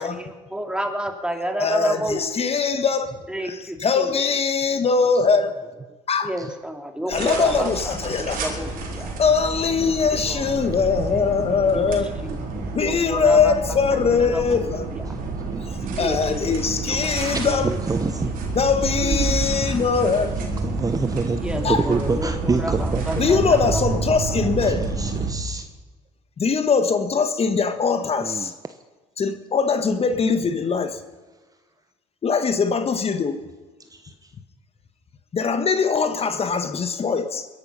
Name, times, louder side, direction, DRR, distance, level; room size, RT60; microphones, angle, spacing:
voice 1, 0.0-2.5 3.3-4.4 6.2-7.7 8.0-9.1 9.8-10.5 11.7-11.9 12.2-14.6 14.9-15.1 15.8-17.6 19.0-19.4 21.4-23.8 24.3-24.5, equal, 5° right, 4 dB, 2.6 m, -31 dB
voice 2, 1.6-5.5 6.1-6.3 7.1-8.4 9.2-12.1 12.7-14.9 15.6-17.7 18.5-20.3 21.6-21.9 23.2-24.9 26.4-28.5 29.2-31.0 32.2-33.4 35.3-37.5, left 5 dB, 35° left, 9 dB, 1.4 m, -22 dB
sound 1, 7.1-25.3, right 3 dB, 60° right, 4.0 m, -28 dB
voice 3, 14.8-15.2 15.5-15.7 17.2-18.4 19.4-19.5 20.4-23.2 24.6-25.7 28.2-28.8 33.9-34.3, right 4 dB, 20° right, 10 dB, 0.9 m, -28 dB
22.0 x 11.0 x 5.6 m, 1.3 s
hypercardioid pair, 65°, 16 cm